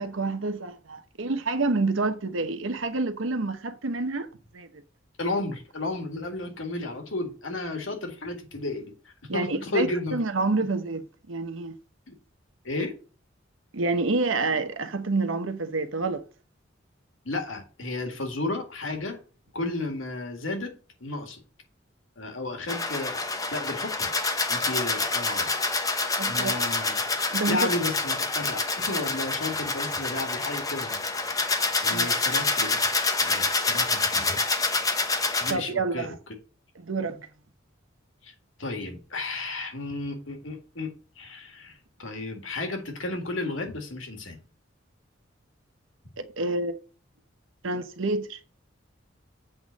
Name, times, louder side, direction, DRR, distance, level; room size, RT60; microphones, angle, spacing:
voice 1, 0.0-4.3 4.5-4.7 9.3-11.8 13.7-16.2 26.2-26.6 27.3-27.7 31.9-32.2 35.5-36.2 36.8-37.3 46.2-46.8 47.6-48.4, right 3 dB, 85° right, 1.0 m, -28 dB
voice 2, 5.2-8.9 9.3-10.2 12.1-12.2 12.6-12.9 17.3-19.2 19.5-20.7 21.0-21.4 22.2-23.2 23.5-24.1 24.5-25.5 26.3-27.0 27.5-31.5 31.8-32.8 33.2-34.4 35.4-36.1 38.2-38.3 38.6-44.4, left 2 dB, 80° left, 1.9 m, -33 dB
sound 1, 22.7-35.5, left 3 dB, 20° left, 0.9 m, -27 dB
7.9 x 3.7 x 6.3 m
head